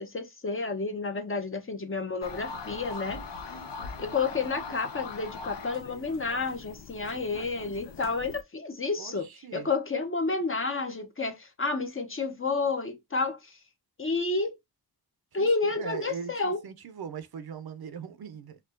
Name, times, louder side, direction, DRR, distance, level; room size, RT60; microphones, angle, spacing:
voice 1, 0.0-3.2 4.0-9.3 9.5-13.6 14.0-14.5 15.3-16.6, left 3 dB, 30° left, 0.7 m, -30 dB
sound 1, 2.2-8.4, left 4 dB, 85° left, 0.7 m, -41 dB
voice 2, 9.0-9.7 15.4-18.6, right 6 dB, 65° right, 0.7 m, -40 dB
4.4 x 2.3 x 2.4 m
cardioid pair, 80°, 41 cm